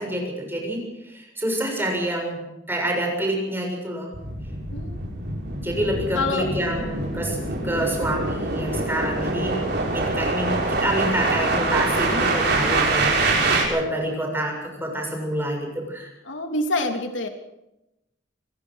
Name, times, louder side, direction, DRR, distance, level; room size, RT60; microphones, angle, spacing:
voice 1, 0.0-4.1 5.6-7.4 7.6-9.6 9.9-16.1, right 1 dB, 10° right, 1 dB, 7.1 m, -27 dB
sound 1, 4.1-13.6, right 2 dB, 60° right, 7.2 m, -24 dB
voice 2, 6.1-6.5 16.2-17.3, left 2 dB, 85° left, 5 dB, 3.1 m, -26 dB
27.5 x 17.5 x 6.5 m, 0.90 s
head